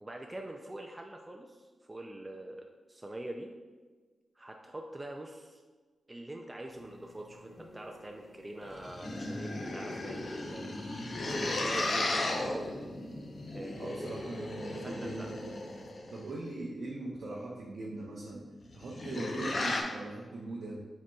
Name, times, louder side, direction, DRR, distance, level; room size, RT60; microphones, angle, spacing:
voice 1, 0.0-3.5 4.4-5.6 6.1-10.7 11.3-12.6 13.5-14.1 14.8-15.3, right 1 dB, 20° right, 2 dB, 0.4 m, -44 dB
sound 1, 6.7-15.9, left 2 dB, 35° left, 1.4 m, -56 dB
sound 2, 8.6-16.2 18.6-19.8, left 2 dB, 50° left, 0.7 m, -35 dB
voice 2, 13.7-15.6 16.1-18.4 18.7-20.8, right 2 dB, 70° right, -4 dB, 0.6 m, -40 dB
7.4 x 2.8 x 2.3 m, 1.4 s
cardioid pair, 65°, 0 cm